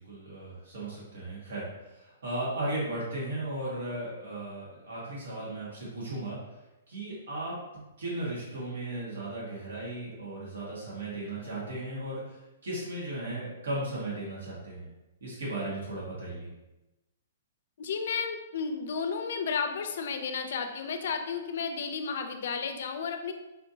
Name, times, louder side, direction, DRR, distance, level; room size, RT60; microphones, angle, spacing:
voice 1, 0.0-6.4 6.9-14.9 15.2-16.5, right 1 dB, 80° right, -6 dB, 1.5 m, -36 dB
voice 2, 17.8-23.3, left 5 dB, 55° left, 6 dB, 0.4 m, -32 dB
4.3 x 2.6 x 2.7 m, 1.0 s
hypercardioid pair, 175°, 0 cm